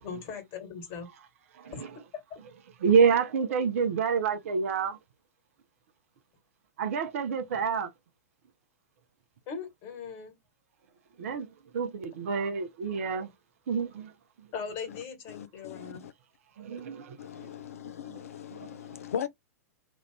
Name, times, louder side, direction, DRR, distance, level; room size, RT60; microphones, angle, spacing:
voice 1, 0.0-1.1 1.6-1.9 2.3-2.4 9.5-10.3 14.5-16.1, left 6 dB, 40° left, 1.8 m, -39 dB
voice 2, 1.6-1.9 2.8-5.0 6.8-7.9 11.2-11.5 11.7-13.3 13.7-14.1 16.6-17.2, right 6 dB, 55° right, 0.6 m, -27 dB
voice 3, 15.3-16.1 17.2-19.3, left 8 dB, 65° left, 0.5 m, -39 dB
3.0 x 2.5 x 3.2 m
figure-of-eight pair, 100°, 9 cm